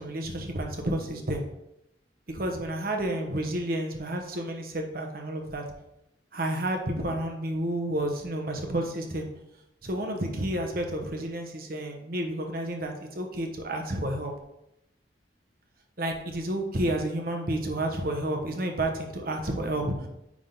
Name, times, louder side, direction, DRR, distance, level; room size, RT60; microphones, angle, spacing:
voice 1, 0.0-1.4 2.3-5.6 6.3-9.3 9.8-14.3 16.0-20.1, right 1 dB, 50° right, 3 dB, 1.1 m, -30 dB
9.6 x 3.8 x 3.9 m, 0.85 s
head